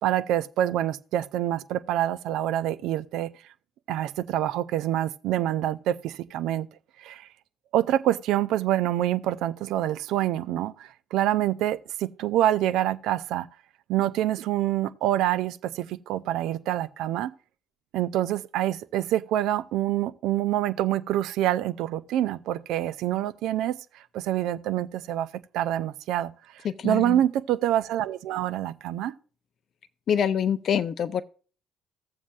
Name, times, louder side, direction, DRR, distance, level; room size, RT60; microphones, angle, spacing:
voice 1, 0.0-3.3 3.9-6.7 7.0-7.3 7.7-13.5 13.9-17.3 17.9-23.8 24.1-25.3 25.5-26.3 26.8-29.1, right 12 dB, 65° right, 0.4 m, -26 dB
voice 2, 26.6-27.2 30.1-31.2, left 8 dB, 50° left, 0.5 m, -25 dB
15.5 x 7.2 x 2.4 m
figure-of-eight pair, 50°, 0 cm